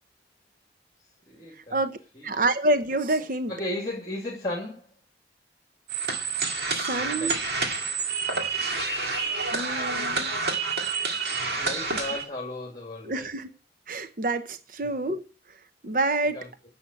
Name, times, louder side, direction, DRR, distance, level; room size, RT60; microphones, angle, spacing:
voice 1, 1.3-1.8 2.1-2.3 3.5-4.8 6.9-7.4 11.6-13.3 14.8-14.9 16.3-16.5, left 1 dB, 20° left, 2.5 m, -35 dB
voice 2, 2.2-3.5 6.8-7.3 9.5-10.3 13.0-13.5 13.9-15.2 15.8-16.4, right 2 dB, 50° right, 0.9 m, -27 dB
sound 1, 5.9-12.2, right 4 dB, 65° right, 2.0 m, -28 dB
10.5 x 6.9 x 8.3 m
head